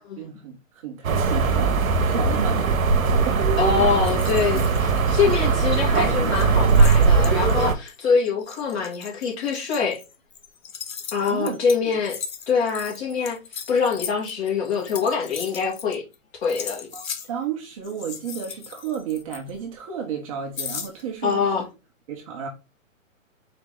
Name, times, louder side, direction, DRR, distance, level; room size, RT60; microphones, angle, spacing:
voice 1, 0.2-2.7 3.2-3.5 3.8-3.9 4.3-4.6 5.3-5.5 11.3-11.6 16.9-21.6 22.1-22.5, right 7 dB, 25° right, 0.7 m, -32 dB
sound 1, 1.0-7.7, right 4 dB, 90° right, 0.8 m, -20 dB
voice 2, 3.6-10.0 11.1-12.2 12.5-13.4 13.7-16.0 16.4-16.9 21.2-21.7, left 5 dB, 50° left, 2.0 m, -24 dB
sound 2, 4.0-5.6 5.9-6.0 6.3-16.2 16.4-17.3 17.8-19.8 20.6-21.4, left 7 dB, 80° left, 0.9 m, -38 dB
4.2 x 2.8 x 3.6 m
hypercardioid pair, 145°, 40 cm